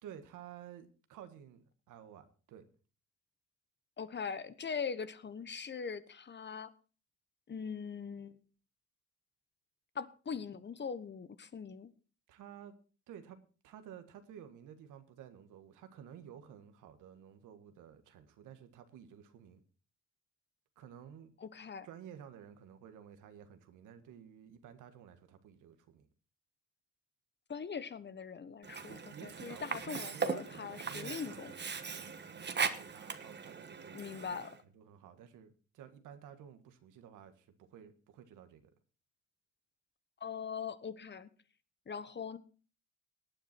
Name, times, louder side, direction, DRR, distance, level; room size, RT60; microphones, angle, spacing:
voice 1, 0.0-2.6 12.3-12.7 13.1-13.4 13.6-19.6 20.8-21.3 21.8-26.1 28.9-38.7, right 9 dB, 85° right, 1.7 m, -53 dB
voice 2, 4.0-6.7 7.5-8.4 9.9-11.9 21.4-21.9 27.5-31.5 33.9-34.6 40.2-41.3 41.9-42.4, left 6 dB, 35° left, 1.2 m, -41 dB
Sink (filling or washing), 28.6-34.6, right 5 dB, 35° right, 1.3 m, -39 dB
18.5 x 9.5 x 4.4 m
cardioid pair, 90°, 30 cm